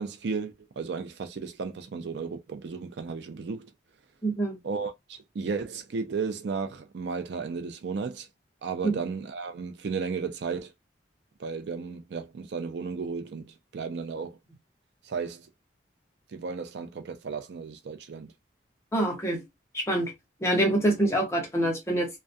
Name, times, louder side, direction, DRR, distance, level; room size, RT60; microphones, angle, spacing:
voice 1, 0.0-3.7 4.6-8.3 8.6-10.7 11.4-14.4 15.0-15.5 16.3-18.3, right 5 dB, 65° right, 0.4 m, -34 dB
voice 2, 4.2-4.6 8.8-9.0 18.9-19.5 19.7-20.1 20.4-22.1, right 1 dB, 15° left, 0.7 m, -25 dB
2.3 x 2.2 x 2.5 m
head